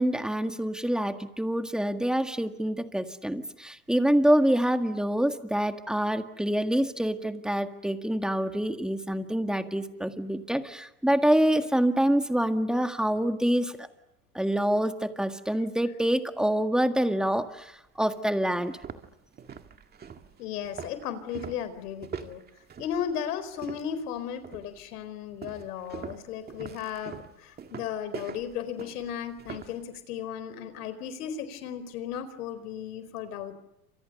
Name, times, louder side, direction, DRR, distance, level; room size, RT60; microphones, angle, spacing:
voice 1, 0.0-13.9 14.3-18.8, right 1 dB, ahead, 7 dB, 1.8 m, -26 dB
sound 1, 17.4-17.5 18.0-18.1 18.6-24.1 24.4-24.8 25.4-29.8, right 7 dB, 20° right, 2.0 m, -42 dB
voice 2, 20.4-22.4 22.8-33.5, left 9 dB, 85° left, 13 dB, 4.5 m, -35 dB
29.0 x 26.5 x 6.7 m, 0.88 s
supercardioid pair, 135°, 44 cm